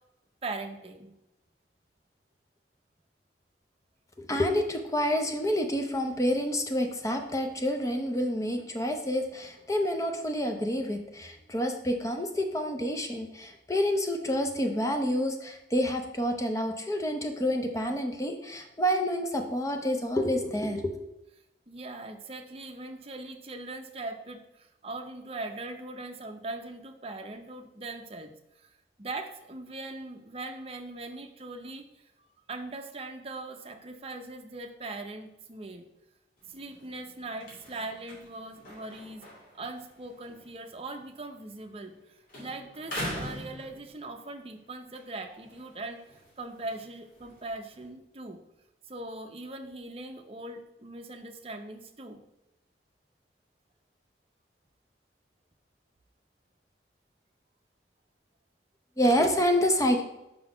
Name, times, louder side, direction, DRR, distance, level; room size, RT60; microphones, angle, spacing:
voice 1, 0.4-1.1 21.7-28.3 29.0-31.9 32.5-35.9 36.5-39.2 39.5-42.0 42.4-46.0 46.4-48.4 48.9-52.2, right 2 dB, 35° right, 6 dB, 0.6 m, -40 dB
voice 2, 4.2-20.8 59.0-60.0, equal, 20° left, 4 dB, 0.6 m, -28 dB
sound 1, 36.4-42.0 42.3-44.3 44.8-47.9, equal, 50° left, 2.3 m, -43 dB
5.2 x 3.9 x 5.8 m, 0.89 s
head